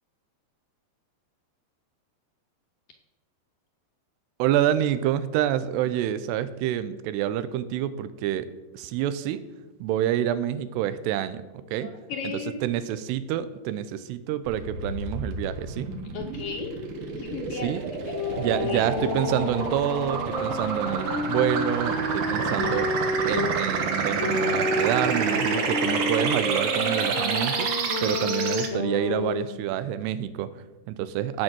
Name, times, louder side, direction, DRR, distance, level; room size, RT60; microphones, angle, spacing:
voice 1, 4.4-8.5 8.7-9.4 9.8-11.4 11.7-11.9 12.2-15.9 17.5-17.8 18.4-22.9 23.3-27.7 28.0-31.4, right 11 dB, 90° right, 13 dB, 2.8 m, -27 dB
voice 2, 11.8-12.6 16.1-16.8 17.1-18.4 18.7-18.8, left 6 dB, 75° left, 2 dB, 2.3 m, -36 dB
sound 1, 14.5-28.7, right 5 dB, 60° right, 2.7 m, -29 dB
sound 2, 18.1-23.6 24.2-29.5, left 2 dB, 55° left, 1.3 m, -30 dB
16.0 x 5.3 x 7.5 m, 1.1 s
omnidirectional pair, 4.7 m